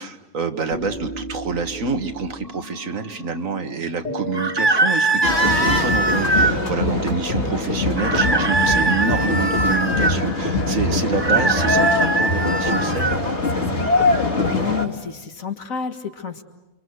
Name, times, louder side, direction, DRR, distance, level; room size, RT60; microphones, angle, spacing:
voice 1, 0.0-13.2, right 4 dB, 70° right, 8 dB, 1.9 m, -27 dB
sound 1, 0.7-3.7 4.0-5.9 6.1-6.2 6.6-6.7 7.0-7.2 7.4-9.2 9.9-11.5 12.2-13.1, equal, 30° left, 1.9 m, -38 dB
sound 2, 4.3-6.6 8.0-10.2 11.1-13.2, right 2 dB, 20° right, 1.5 m, -21 dB
sound 3, 5.2-14.9, left 2 dB, 50° left, 3.0 m, -22 dB
voice 2, 14.4-16.4, left 7 dB, 70° left, 6 dB, 2.2 m, -29 dB
30.0 x 24.5 x 8.0 m, 1.1 s
omnidirectional pair, 1.5 m